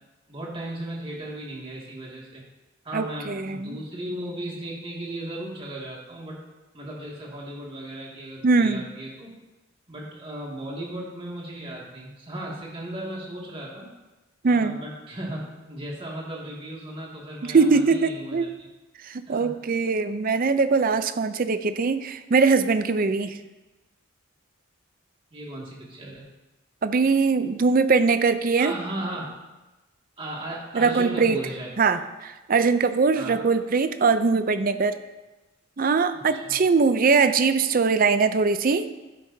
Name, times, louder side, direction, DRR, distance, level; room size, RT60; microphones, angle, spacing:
voice 1, 0.3-2.4 2.8-6.4 6.7-9.3 9.9-13.9 14.5-18.7 19.3-19.5 25.3-26.2 28.6-29.4 30.2-31.7 33.2-33.5 36.1-36.6, right 1 dB, 25° right, -4 dB, 2.1 m, -36 dB
voice 2, 2.9-3.8 8.4-8.9 14.4-14.8 17.4-18.5 19.1-23.4 26.8-28.7 30.7-31.4 31.8-35.0 35.8-38.8, right 4 dB, 45° right, 11 dB, 0.5 m, -21 dB
11.5 x 9.3 x 2.7 m, 1.1 s
head